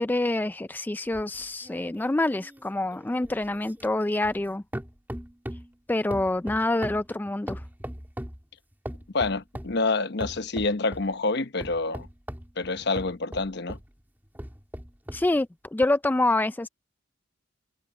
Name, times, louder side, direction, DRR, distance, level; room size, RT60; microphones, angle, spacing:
voice 1, 0.0-4.6 5.9-7.6 15.1-16.7, left 2 dB, 10° left, 0.3 m, -26 dB
sound 1, 1.1-4.5 4.7-5.7 6.1-8.4 8.9-9.8 10.2-11.1 11.6-13.9 14.4-15.3 15.8-15.9, equal, 10° right, 2.9 m, -39 dB
voice 2, 9.1-12.1 12.6-13.8, left 3 dB, 60° left, 1.0 m, -27 dB
head